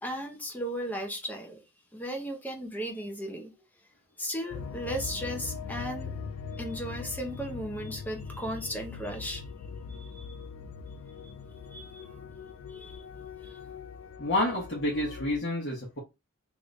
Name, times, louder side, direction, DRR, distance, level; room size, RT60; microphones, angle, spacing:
voice 1, 0.0-1.6 1.9-3.6 4.2-6.1 6.5-9.4 9.9-10.3 11.2-11.3 11.7-12.1 12.7-13.0 13.4-13.5, equal, 10° left, 0.6 m, -36 dB
sound 1, 4.5-15.4, left 5 dB, 80° left, 0.4 m, -41 dB
voice 2, 14.2-16.0, left 1 dB, 55° left, 1.1 m, -29 dB
3.0 x 2.6 x 3.1 m
head